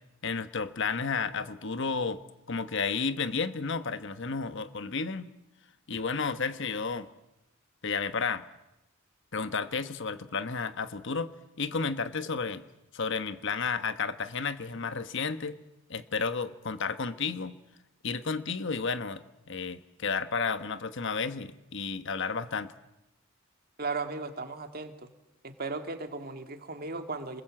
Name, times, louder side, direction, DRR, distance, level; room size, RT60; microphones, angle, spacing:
voice 1, 0.2-2.2 2.5-5.3 5.9-7.1 7.8-8.5 9.3-11.3 11.6-12.6 12.9-15.6 15.9-17.5 18.0-22.7, left 5 dB, 60° left, 12 dB, 1.1 m, -32 dB
voice 2, 23.8-24.9 25.4-27.4, right 3 dB, 45° right, 7 dB, 2.2 m, -36 dB
28.0 x 21.0 x 7.8 m, 0.92 s
head